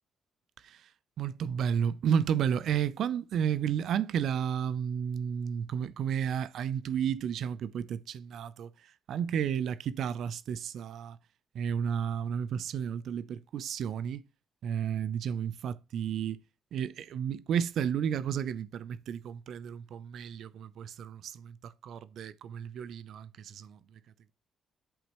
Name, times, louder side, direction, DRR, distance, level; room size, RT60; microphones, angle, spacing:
voice 1, 1.2-11.2 11.5-14.2 14.6-16.4 16.7-24.0, right 8 dB, 70° right, 0.5 m, -32 dB
8.2 x 6.1 x 3.0 m
cardioid pair, 90°, 0 cm